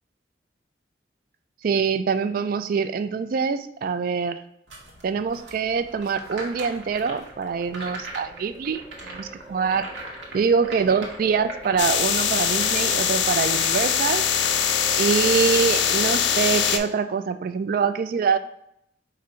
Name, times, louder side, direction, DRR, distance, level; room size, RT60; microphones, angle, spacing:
voice 1, 1.6-4.4 5.0-9.9 10.3-14.2 15.0-18.4, right 5 dB, 50° right, 10 dB, 0.3 m, -24 dB
sound 1, 4.7-15.6, right 1 dB, 90° right, 1.1 m, -41 dB
sound 2, 6.5-16.9, right 2 dB, 30° right, 0.7 m, -43 dB
sound 3, 11.8-16.8, left 8 dB, 75° left, 0.4 m, -22 dB
4.9 x 2.5 x 4.3 m, 0.74 s
head